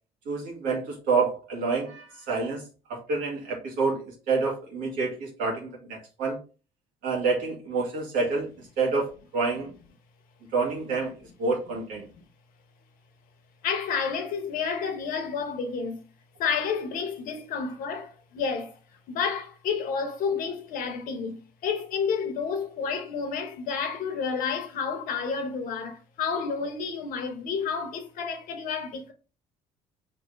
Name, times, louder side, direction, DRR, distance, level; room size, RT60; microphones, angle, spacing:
voice 1, 0.3-6.4 7.0-8.5 8.8-9.7 10.5-11.1 11.4-12.1, right 4 dB, 70° right, 2.1 m, -28 dB
voice 2, 13.6-16.0 16.4-18.8 19.1-29.1, left 6 dB, 65° left, 1.2 m, -30 dB
4.8 x 3.5 x 3.2 m
hypercardioid pair, 65°, 15 cm